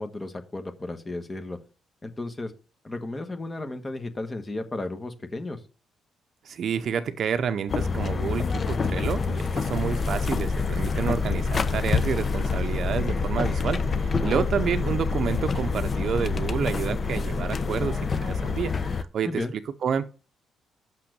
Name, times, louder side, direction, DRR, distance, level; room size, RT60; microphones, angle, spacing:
voice 1, 0.0-1.6 2.0-2.5 2.8-5.6 14.2-14.5 19.2-19.5, left 2 dB, 25° left, 1.4 m, -34 dB
voice 2, 6.4-19.4 19.8-20.1, right 7 dB, 60° right, 0.6 m, -29 dB
sound 1, 7.7-19.0, left 4 dB, 45° left, 0.8 m, -26 dB
6.1 x 5.8 x 6.7 m
cardioid pair, 70°, 0 cm